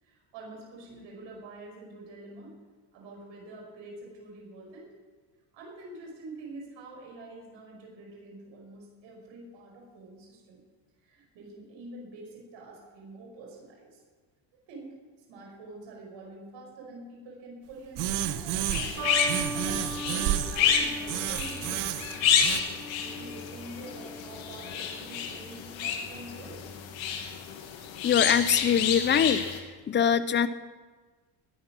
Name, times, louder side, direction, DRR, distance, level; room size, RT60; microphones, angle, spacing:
voice 1, 0.0-2.6 2.9-4.9 5.5-10.6 11.0-14.0 14.7-19.0 19.5-22.4 23.0-26.6, right 2 dB, 65° right, -1 dB, 5.7 m, -46 dB
sound 1, 18.0-19.0 19.3-20.6 21.1-22.6, right 12 dB, 80° right, 1.2 m, -31 dB
sound 2, 18.6-29.6, left 7 dB, 70° left, 2.2 m, -30 dB
sound 3, 19.0-25.5 26.3-26.7, equal, 35° right, 3.5 m, -41 dB
voice 2, 28.0-29.5 29.9-30.5, left 8 dB, 25° left, 14 dB, 0.4 m, -23 dB
20.5 x 10.0 x 6.1 m, 1.4 s
cardioid pair, 165°, 48 cm